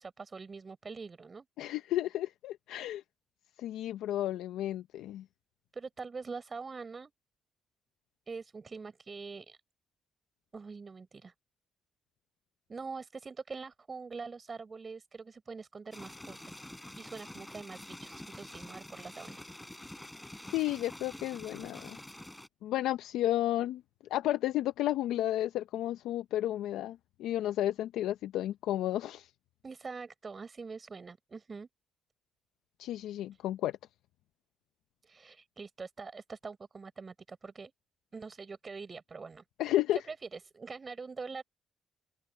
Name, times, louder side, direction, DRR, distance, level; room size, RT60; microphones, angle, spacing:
voice 1, 0.0-1.4 4.2-4.3 5.7-7.1 8.3-9.6 10.5-11.3 12.7-16.4 17.0-19.4 29.6-31.7 33.3-33.4 35.0-37.7 38.1-41.4, right 4 dB, 35° right, 6.3 m, -44 dB
voice 2, 1.6-3.0 3.6-5.2 20.5-22.0 22.6-23.8 24.1-29.3 32.8-33.7 39.6-40.0, left 13 dB, 90° left, 0.6 m, -32 dB
sound 1, 15.9-22.5, left 1 dB, 10° left, 4.1 m, -47 dB
open air
cardioid pair, 90°, 0 cm